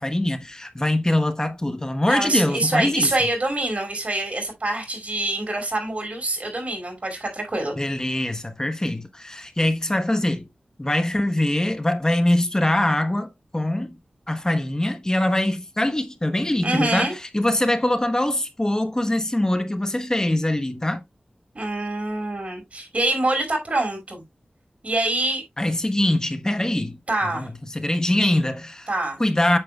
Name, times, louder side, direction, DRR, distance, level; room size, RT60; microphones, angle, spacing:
voice 1, 0.0-3.1 7.8-10.4 10.8-14.0 14.3-21.0 25.6-28.9 29.2-29.6, left 1 dB, 20° left, 1.0 m, -23 dB
voice 2, 2.1-7.7 16.6-17.1 21.5-24.2 24.8-25.4 27.1-27.5 28.9-29.2, right 2 dB, 50° right, 5.4 m, -25 dB
8.9 x 7.5 x 2.3 m
wide cardioid pair, 65°, 3 cm